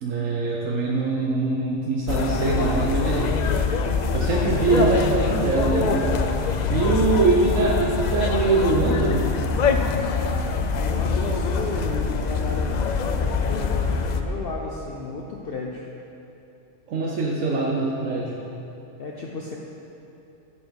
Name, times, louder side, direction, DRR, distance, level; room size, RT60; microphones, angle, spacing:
voice 1, 0.0-3.4 4.1-6.2 6.7-9.3 16.9-18.4, right 3 dB, 80° right, -3 dB, 1.2 m, -23 dB
sound 1, 2.1-14.2, left 4 dB, 85° left, 0.3 m, -24 dB
voice 2, 10.7-12.8 13.1-15.9 19.0-19.6, left 3 dB, 55° left, -1 dB, 0.8 m, -34 dB
7.9 x 6.8 x 5.2 m, 2.9 s
omnidirectional pair, 1.3 m